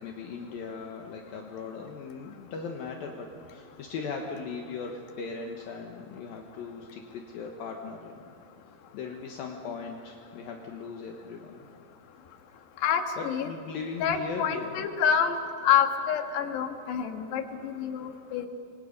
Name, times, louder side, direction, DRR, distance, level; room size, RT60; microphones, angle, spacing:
voice 1, 0.0-8.2 8.9-11.7 13.2-14.9, left 4 dB, 70° left, 2 dB, 2.9 m, -38 dB
voice 2, 12.8-13.5 14.0-15.4 15.6-18.5, left 8 dB, 90° left, 6 dB, 3.7 m, -27 dB
28.5 x 24.5 x 5.4 m, 2.5 s
omnidirectional pair, 4.7 m